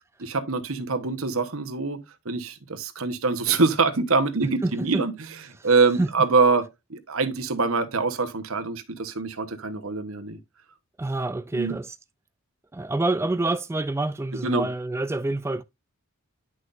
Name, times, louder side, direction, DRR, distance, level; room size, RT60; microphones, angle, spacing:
voice 1, 0.2-2.0 2.2-5.1 5.6-10.4 11.5-11.7 14.4-14.7, right 4 dB, 65° right, 1.2 m, -24 dB
voice 2, 4.6-5.0 5.6-5.7 6.0-6.1 11.0-12.0 12.7-15.6, right 2 dB, 10° right, 0.3 m, -27 dB
10.0 x 6.1 x 2.6 m
head